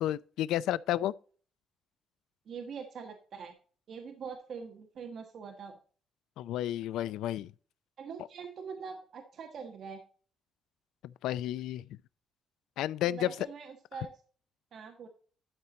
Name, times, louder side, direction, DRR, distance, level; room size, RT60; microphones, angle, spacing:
voice 1, 0.0-1.1 6.4-7.5 11.0-12.0 12.8-13.3, left 13 dB, 90° left, 0.4 m, -32 dB
voice 2, 2.5-3.5 3.9-5.8 8.0-10.0 13.1-14.1 14.7-15.1, right 6 dB, 45° right, 1.2 m, -43 dB
12.0 x 4.5 x 3.9 m
cardioid pair, 170°, 0 cm